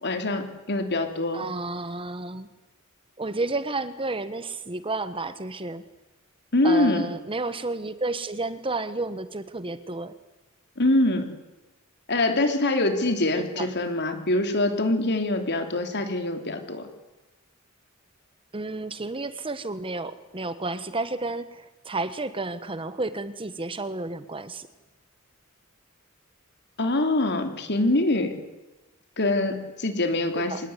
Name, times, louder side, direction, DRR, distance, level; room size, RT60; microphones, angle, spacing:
voice 1, 0.0-1.5 6.5-7.1 10.8-11.3 12.1-16.8 26.8-28.3 29.2-30.7, left 2 dB, 55° left, 6 dB, 3.5 m, -24 dB
voice 2, 1.3-2.5 3.2-5.8 6.6-10.1 13.4-13.7 18.5-24.7 30.4-30.6, right 2 dB, 25° right, 13 dB, 1.2 m, -31 dB
25.0 x 20.0 x 9.9 m, 1.0 s
head